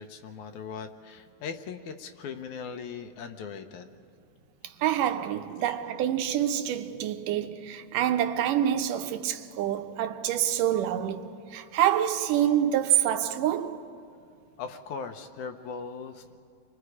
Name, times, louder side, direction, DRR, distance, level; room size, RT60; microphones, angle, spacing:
voice 1, 0.0-3.9 5.6-5.8 14.6-16.4, left 6 dB, 75° left, 2.3 m, -39 dB
voice 2, 4.6-13.8, right 10 dB, 90° right, 2.5 m, -27 dB
30.0 x 23.0 x 4.9 m
omnidirectional pair, 3.6 m